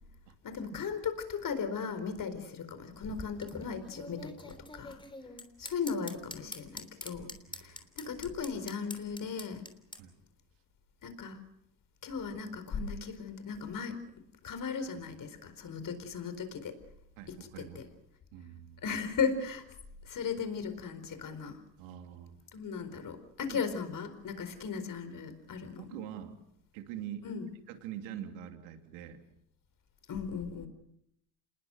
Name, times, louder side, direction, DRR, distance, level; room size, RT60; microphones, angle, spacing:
voice 1, 0.4-5.0 5.6-7.3 7.6-9.6 11.0-11.4 12.0-14.0 14.4-16.8 17.6-17.8 18.8-19.6 20.0-21.6 22.5-25.9 27.2-27.5 30.1-30.7, left 6 dB, 45° left, 11 dB, 4.5 m, -37 dB
sound 1, 2.9-10.0, left 2 dB, 10° left, 3.3 m, -45 dB
voice 2, 7.2-7.8 9.2-9.3 10.0-10.1 17.2-17.8 18.3-18.8 21.8-22.3 23.5-23.6 25.8-26.4 26.7-27.3 27.7-29.2, right 10 dB, 75° right, 6 dB, 2.9 m, -44 dB
27.0 x 20.5 x 6.4 m, 0.75 s
supercardioid pair, 85°, 46 cm